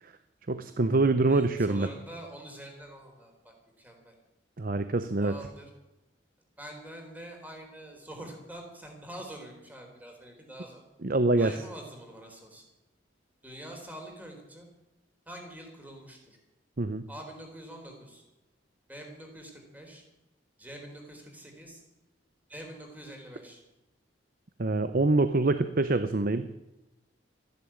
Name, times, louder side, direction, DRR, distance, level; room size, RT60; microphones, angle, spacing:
voice 1, 0.5-1.9 4.6-5.4 11.0-11.5 16.8-17.1 24.6-26.5, right 2 dB, 50° right, 11 dB, 0.7 m, -25 dB
voice 2, 1.3-4.1 5.2-5.7 6.6-10.8 11.4-12.7 13.4-14.7 15.3-16.4 17.1-18.2 18.9-20.0 20.6-21.8 22.5-23.6, right 1 dB, 10° right, 2 dB, 3.9 m, -45 dB
14.0 x 11.0 x 8.7 m, 0.99 s
head